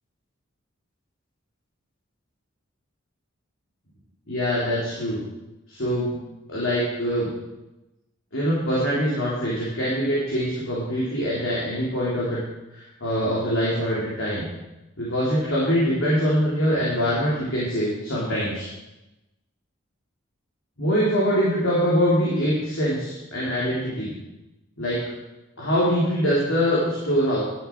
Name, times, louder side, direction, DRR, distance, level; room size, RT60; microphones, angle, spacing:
voice 1, 4.3-5.2 5.7-6.1 6.5-7.3 8.3-12.4 12.7-14.5 15.0-18.7 20.8-24.1 24.8-25.0 25.6-27.4, equal, 70° left, -7 dB, 3.3 m, -23 dB
11.0 x 11.0 x 4.5 m, 0.99 s
head